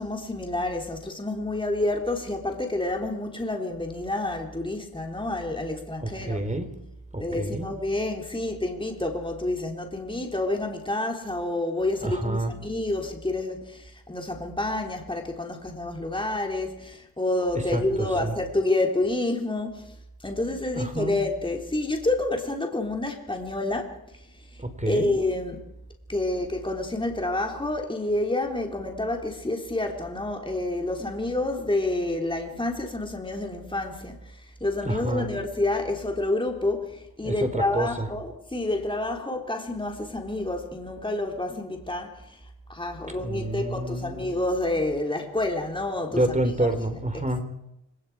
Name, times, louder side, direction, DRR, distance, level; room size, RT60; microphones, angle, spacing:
voice 1, 0.0-6.4 7.2-19.9 20.2-24.0 24.3-25.6 26.1-42.4 42.7-46.3 46.6-46.7, left 2 dB, 10° left, 3.7 m, -29 dB
voice 2, 6.0-6.7 7.1-7.7 12.0-12.5 17.5-18.3 20.7-21.2 24.6-25.1 34.8-35.3 37.2-38.1 43.1-44.3 46.1-47.4, right 1 dB, 20° right, 4.2 m, -28 dB
30.0 x 19.0 x 4.9 m
supercardioid pair, 55°, 40 cm